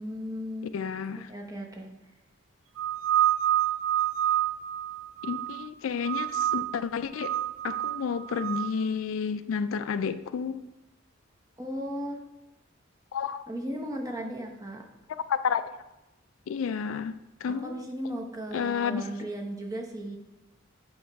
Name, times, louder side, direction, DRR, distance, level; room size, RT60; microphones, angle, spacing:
voice 1, 0.0-0.7 1.3-1.9 11.6-12.2 13.5-14.8 17.5-20.2, equal, 20° right, 1 dB, 0.8 m, -36 dB
voice 2, 0.6-1.3 5.2-7.3 7.6-10.6 13.1-13.4 15.3-15.8 16.5-17.8 18.5-19.1, left 6 dB, 85° left, 12 dB, 0.3 m, -31 dB
sound 1, 2.8-5.7 6.0-6.8 7.2-8.7, right 12 dB, 80° right, 0.4 m, -28 dB
8.5 x 3.0 x 4.5 m, 0.96 s
head